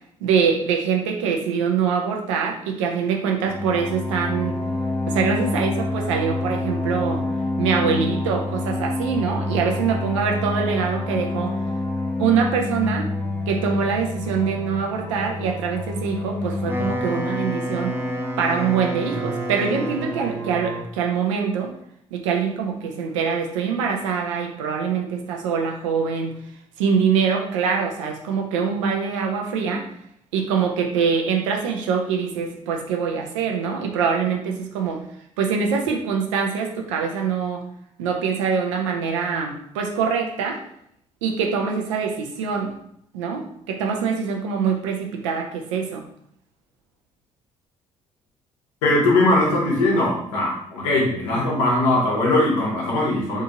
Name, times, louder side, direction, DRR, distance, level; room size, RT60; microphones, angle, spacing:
voice 1, 0.2-4.6 5.1-7.3 7.6-11.6 12.2-13.1 13.5-17.9 18.4-21.7 22.1-26.4 26.8-29.9 30.3-35.0 35.4-37.6 38.0-40.6 41.2-42.7 43.1-46.0, right 6 dB, 85° right, 1 dB, 0.5 m, -24 dB
sound 1, 3.4-20.8, left 2 dB, 15° left, 0.9 m, -28 dB
Wind instrument woodwind instrument, 16.5-20.4, equal, 15° right, 0.5 m, -29 dB
voice 2, 48.8-53.4, left 2 dB, 85° left, -4 dB, 0.8 m, -20 dB
2.7 x 2.5 x 2.7 m, 0.70 s
hypercardioid pair, 45°, 16 cm